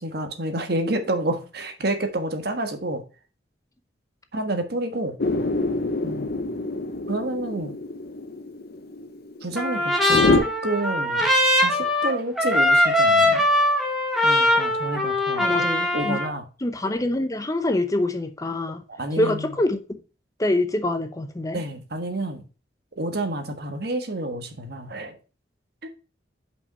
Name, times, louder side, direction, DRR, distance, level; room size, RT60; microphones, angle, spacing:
voice 1, 0.0-3.0 4.3-5.2 6.0-6.4 7.1-7.8 9.4-11.3 11.6-13.4 14.2-15.7 15.9-16.4 18.9-19.5 21.5-22.4 23.0-25.2 25.8-25.9, right 1 dB, 60° right, 1.4 m, -29 dB
sound 1, 5.2-10.4, left 3 dB, 55° left, 0.7 m, -26 dB
Trumpet, 9.6-16.3, left 1 dB, ahead, 1.8 m, -21 dB
voice 2, 15.4-16.2 16.6-18.8 19.2-19.8 20.4-21.6, left 1 dB, 20° left, 0.7 m, -25 dB
5.8 x 5.4 x 5.2 m
head